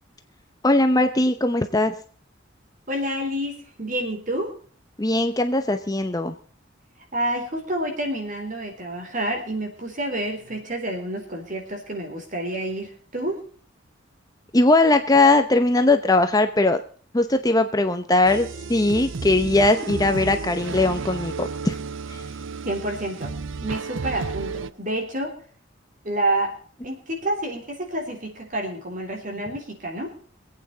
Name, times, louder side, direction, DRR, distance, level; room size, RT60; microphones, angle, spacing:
voice 1, 0.6-1.9 5.0-6.3 14.5-16.8 17.1-21.8 22.1-22.2, left 2 dB, 20° left, 7 dB, 0.8 m, -20 dB
voice 2, 2.9-4.5 7.1-13.4 22.7-23.3 23.6-25.3 26.0-26.6 26.8-30.1, right 1 dB, 40° right, 3 dB, 3.9 m, -28 dB
sound 1, 18.2-24.7, right 4 dB, 75° right, 0.6 m, -32 dB
25.0 x 8.9 x 4.0 m, 0.43 s
head